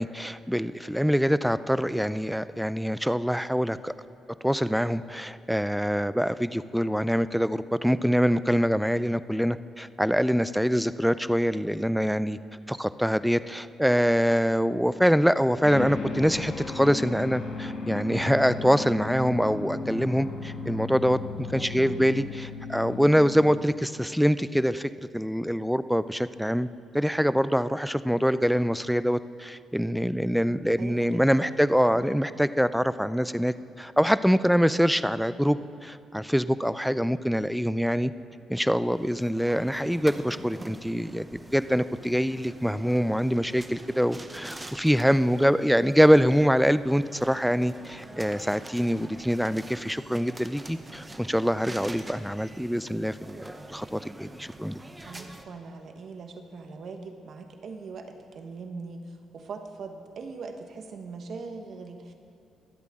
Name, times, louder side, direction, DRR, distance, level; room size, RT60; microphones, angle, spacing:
voice 1, 0.0-3.9 4.4-12.4 12.7-26.7 26.9-38.1 38.5-53.4 53.7-54.8, equal, ahead, 14 dB, 0.4 m, -24 dB
sound 1, 15.6-23.9, left 3 dB, 75° left, 1.7 m, -35 dB
voice 2, 21.6-22.0 30.8-31.6 31.9-32.2 55.1-62.1, right 4 dB, 60° right, 5 dB, 1.2 m, -41 dB
sound 2, 38.8-55.4, right 2 dB, 15° right, 0.9 m, -45 dB
23.5 x 8.3 x 3.7 m, 2.5 s
cardioid pair, 90°, 0 cm